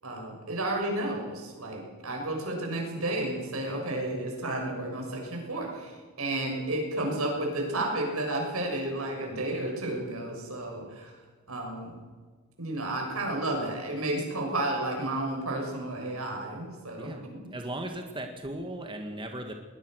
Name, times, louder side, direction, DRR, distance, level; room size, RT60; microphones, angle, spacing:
voice 1, 0.0-11.2 11.5-12.0 12.6-17.1, right 1 dB, 85° right, 1 dB, 6.7 m, -32 dB
voice 2, 17.5-19.5, right 1 dB, 25° right, 4 dB, 1.8 m, -37 dB
21.5 x 20.0 x 6.5 m, 1.5 s
head